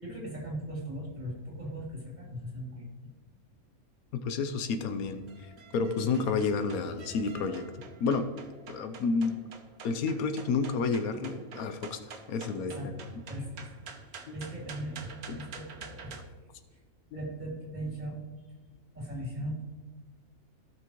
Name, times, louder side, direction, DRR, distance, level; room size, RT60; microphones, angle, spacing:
voice 1, 0.0-2.9 12.7-13.6 14.3-16.3 16.7-16.8 17.1-18.1 18.9-19.6, right 1 dB, 30° right, -4 dB, 3.0 m, -38 dB
voice 2, 4.1-7.7 8.0-8.3 8.7-9.4 9.8-12.0 12.3-12.9 14.3-14.4 15.3-15.4, left 4 dB, 90° left, 9 dB, 1.2 m, -30 dB
sound 1, 4.5-16.2, right 5 dB, 85° right, 1.4 m, -49 dB
16.5 x 6.0 x 3.1 m, 1.3 s
omnidirectional pair, 1.5 m